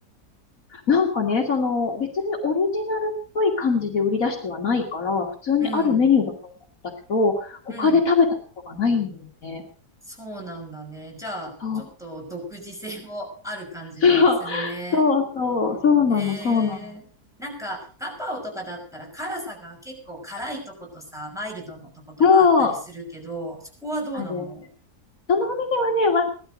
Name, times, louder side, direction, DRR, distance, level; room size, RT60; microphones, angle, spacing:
voice 1, 0.7-6.2 7.1-8.3 8.7-9.1 9.4-9.6 11.6-11.8 14.0-16.9 22.2-22.7 24.1-24.4 25.3-26.3, left 5 dB, 60° left, 3 dB, 2.2 m, -21 dB
voice 2, 5.6-6.1 7.7-8.0 10.0-15.0 16.1-17.0 17.4-24.7, right 1 dB, ahead, -1 dB, 5.8 m, -35 dB
17.5 x 12.5 x 5.1 m, 0.40 s
omnidirectional pair, 1.7 m